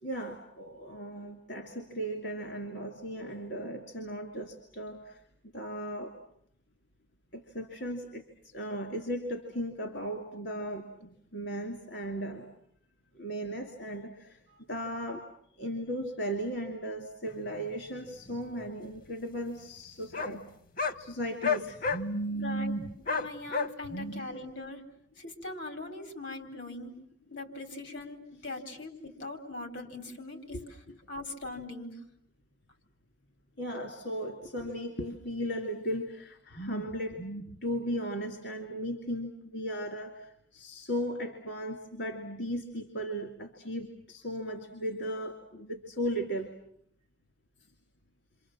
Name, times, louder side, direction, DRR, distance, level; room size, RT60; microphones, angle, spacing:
voice 1, 0.0-5.2 5.5-6.1 7.3-12.5 13.1-14.4 14.7-15.2 15.6-20.4 21.0-22.9 23.9-24.3 30.5-30.6 33.6-46.5, equal, 65° left, 3 dB, 2.5 m, -36 dB
sound 1, 17.3-17.4 18.3-18.4 18.6-18.7 19.0-19.1 20.1-20.3 20.8-21.0 21.4-22.0 23.1-23.7, left 5 dB, 50° left, 1.0 m, -29 dB
voice 2, 22.3-22.8 23.1-24.8 25.2-27.0 27.3-30.6 31.1-31.9, left 2 dB, 85° left, 6 dB, 4.2 m, -41 dB
28.5 x 26.0 x 7.4 m, 0.70 s
head